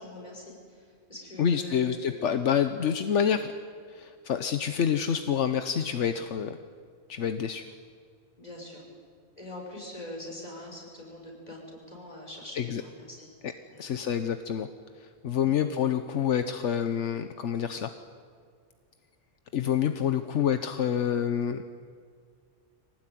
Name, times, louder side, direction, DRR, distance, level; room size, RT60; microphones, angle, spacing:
voice 1, 0.0-2.3 7.5-7.6 8.4-8.8 9.4-13.3 13.7-13.8 15.4-15.7, left 1 dB, 35° left, -1 dB, 6.2 m, -43 dB
voice 2, 1.4-3.5 3.9-6.6 7.1-7.6 12.6-12.8 13.4-13.5 13.8-14.7 15.0-17.9 19.5-21.6, left 8 dB, 75° left, 9 dB, 1.2 m, -27 dB
24.0 x 18.5 x 9.3 m, 2.1 s
omnidirectional pair, 1.2 m